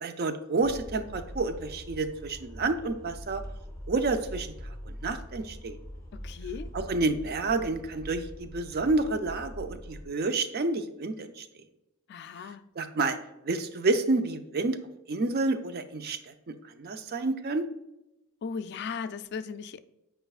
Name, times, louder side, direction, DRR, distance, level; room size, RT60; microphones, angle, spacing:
voice 1, 0.0-3.4 3.9-5.8 6.7-11.5 12.8-13.2 13.4-14.8 15.1-17.7, right 3 dB, 45° right, 0.5 m, -29 dB
sound 1, 0.6-10.0, equal, 15° left, 0.9 m, -43 dB
voice 2, 6.1-6.7 12.1-12.6 18.4-19.8, left 5 dB, 50° left, 0.3 m, -37 dB
8.8 x 5.0 x 2.4 m
head